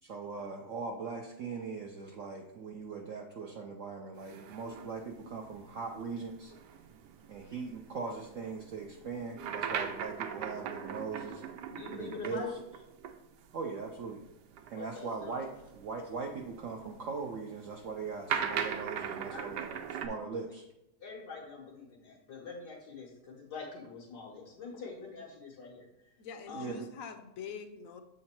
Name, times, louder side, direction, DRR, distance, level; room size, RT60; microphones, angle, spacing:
voice 1, 0.0-6.5 7.3-11.4 11.9-12.4 13.5-14.2 14.7-15.5 15.8-20.6 26.5-26.9, right 4 dB, 65° right, 1 dB, 0.8 m, -40 dB
sound 1, 4.2-13.2 13.4-13.5 14.5-20.1, right 7 dB, 85° right, 1.2 m, -40 dB
voice 2, 11.7-12.5 14.8-15.3 19.3-19.5 21.0-25.9 26.5-26.7, left 4 dB, 90° left, -5 dB, 1.8 m, -45 dB
voice 3, 26.2-28.0, left 6 dB, 65° left, 8 dB, 1.0 m, -44 dB
7.5 x 3.9 x 4.3 m, 0.89 s
omnidirectional pair, 1.8 m